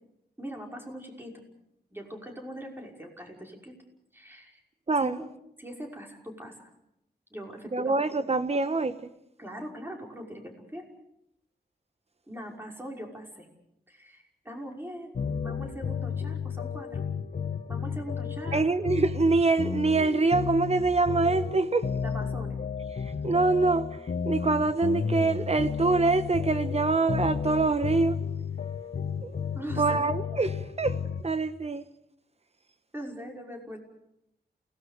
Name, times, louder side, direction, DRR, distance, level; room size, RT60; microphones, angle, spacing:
voice 1, 0.4-1.4 1.9-3.7 4.1-4.6 5.0-5.3 5.6-6.5 7.3-8.0 9.4-10.9 12.3-13.5 13.9-15.1 15.4-17.0 17.7-18.7 22.0-22.6 29.5-30.0 32.9-33.8, equal, 15° right, 5.8 m, -41 dB
voice 2, 4.9-5.2 7.7-9.0 18.5-21.9 23.2-23.9 24.2-28.2 29.2-29.3 29.8-31.8, right 3 dB, 40° right, 1.3 m, -25 dB
sound 1, 15.2-31.2, left 6 dB, 65° left, 1.8 m, -33 dB
29.0 x 18.5 x 6.8 m
wide cardioid pair, 100°, 17 cm